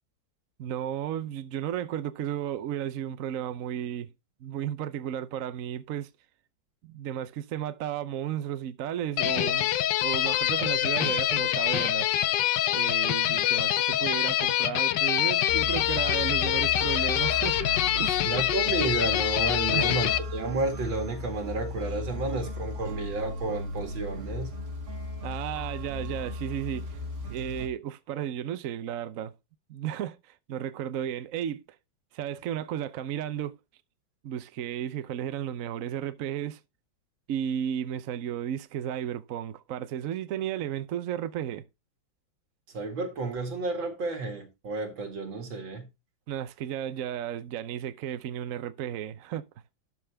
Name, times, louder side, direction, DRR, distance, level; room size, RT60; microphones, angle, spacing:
voice 1, 0.6-4.1 4.4-6.1 6.8-9.7 10.0-12.1 12.7-17.6 17.9-18.3 19.7-19.9 25.2-27.0 27.3-29.3 29.7-31.6 32.1-33.6 34.2-36.6 37.3-41.7 46.3-49.4, right 10 dB, 60° right, 0.9 m, -33 dB
sound 1, 9.2-20.2, left 12 dB, 70° left, 1.2 m, -25 dB
sound 2, 15.5-27.7, left 2 dB, 40° right, 1.8 m, -36 dB
voice 2, 18.2-24.5 42.7-45.9, right 3 dB, 85° right, 2.8 m, -31 dB
12.5 x 5.5 x 3.4 m
omnidirectional pair, 2.1 m